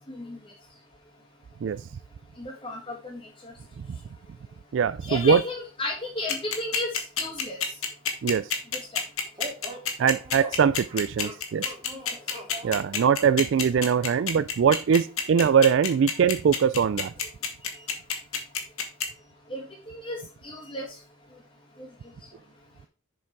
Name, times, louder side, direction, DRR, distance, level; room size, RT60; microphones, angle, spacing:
voice 1, 0.1-0.4 2.4-3.5 5.0-7.6 8.9-9.0 17.6-17.9 19.5-21.0 21.8-21.9, left 2 dB, 25° left, 1.8 m, -34 dB
voice 2, 4.7-5.4 8.2-8.5 10.0-11.7 12.6-17.1, right 7 dB, 60° right, 0.3 m, -22 dB
sound 1, 6.3-19.0, left 7 dB, 85° left, 1.6 m, -27 dB
sound 2, 9.4-14.2, equal, 20° right, 2.0 m, -42 dB
7.2 x 5.9 x 4.5 m
head